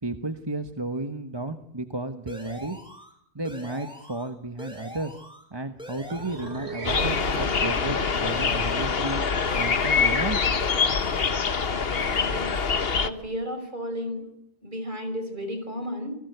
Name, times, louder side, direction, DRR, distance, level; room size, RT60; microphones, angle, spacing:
voice 1, 0.0-2.8 3.3-5.2 5.5-9.2 9.5-10.4, right 2 dB, 25° right, 7 dB, 1.3 m, -33 dB
sound 1, 2.3-3.1 3.4-4.3 4.6-5.4 5.8-6.6 7.0-7.8 8.3-9.1 9.4-10.3 10.6-11.4, equal, 5° right, 6.4 m, -43 dB
sound 2, 6.1-10.6, right 2 dB, 75° right, 3.4 m, -39 dB
sound 3, 6.9-13.1, left 5 dB, 60° left, 1.4 m, -25 dB
voice 2, 12.2-12.6 13.0-14.3 14.6-16.2, equal, 45° right, 8 dB, 5.7 m, -33 dB
29.5 x 20.0 x 8.1 m, 0.71 s
omnidirectional pair, 1.1 m